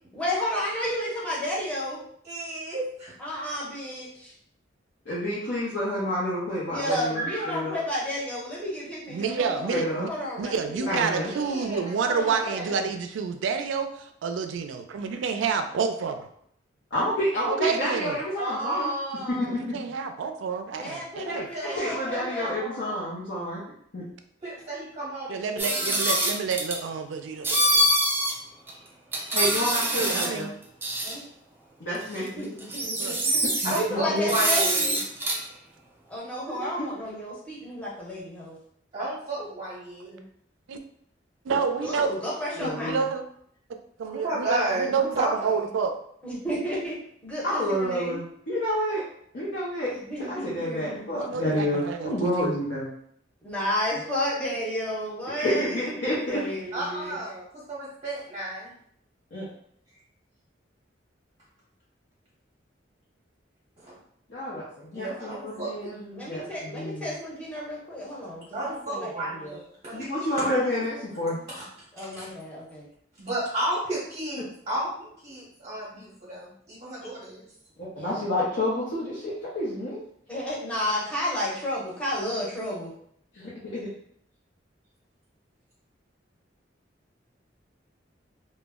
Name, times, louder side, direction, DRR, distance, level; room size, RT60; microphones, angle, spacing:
voice 1, 0.1-2.0 3.2-4.3 6.7-10.9 11.2-11.4 12.0-12.9 20.7-22.5 31.0-31.2 32.2-33.4 33.7-35.0 36.1-38.6 41.8-43.0 46.2-47.0 47.2-48.2 49.9-51.1 53.4-57.2 64.9-65.3 66.1-69.6 71.9-72.9 77.9-78.2 80.3-82.9, left 1 dB, 5° left, -7 dB, 0.9 m, -32 dB
voice 2, 2.2-3.1 6.9-7.6 10.8-12.8 18.4-19.7 21.3-21.8 22.1-23.0 24.4-26.4 33.6-35.0 38.9-40.2 44.0-45.7 56.7-58.7 63.8-64.0 64.9-66.0 68.5-70.8 71.2-71.6 72.0-72.3 73.2-77.4, right 1 dB, 35° right, -7 dB, 0.7 m, -33 dB
voice 3, 5.1-7.8 9.7-10.1 10.9-11.3 16.9-18.9 19.3-19.6 21.8-23.6 23.9-24.1 29.3-30.5 31.8-32.5 33.6-34.3 36.5-36.9 42.6-43.1 47.4-49.0 49.3-49.9 50.2-52.9 55.4-56.5 59.3-59.5 64.3-64.6 64.9-67.1 69.9-71.4 77.8-80.0 83.3-83.9, left 1 dB, 70° left, -8 dB, 0.7 m, -29 dB
voice 4, 9.1-10.1 10.4-13.9 14.2-16.3 17.5-18.2 19.5-21.5 25.3-27.8 29.9-30.5 33.0-33.2 41.5-42.1 42.6-43.2 44.0-46.0 51.1-52.1, right 5 dB, 80° right, 7 dB, 0.3 m, -29 dB
sound 1, 25.6-26.8 27.4-28.3 28.7-28.8 29.1-30.4 30.8-31.1 32.2-32.3 32.6-33.8 34.3-35.4, right 1 dB, 10° right, 0.4 m, -24 dB
2.2 x 2.0 x 3.5 m, 0.66 s
head